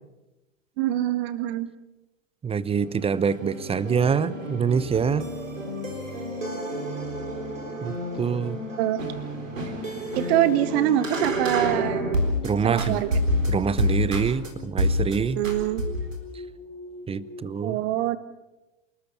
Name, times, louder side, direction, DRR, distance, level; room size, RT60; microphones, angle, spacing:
voice 1, 0.8-1.7 8.8-9.0 10.2-12.1 12.6-13.1 15.4-15.8 17.6-18.2, right 12 dB, 55° right, 13 dB, 1.8 m, -24 dB
voice 2, 2.4-5.3 7.8-8.6 12.4-13.0 13.5-15.4 17.1-17.8, right 6 dB, 15° right, 19 dB, 0.8 m, -25 dB
sound 1, 2.7-12.5 12.8-14.5 14.8-15.1 15.4-16.2, equal, 80° right, 4.2 m, -29 dB
sound 2, 3.4-17.4, left 5 dB, 35° left, 4.1 m, -43 dB
27.5 x 13.0 x 8.5 m, 1.0 s
figure-of-eight pair, 85°, 38 cm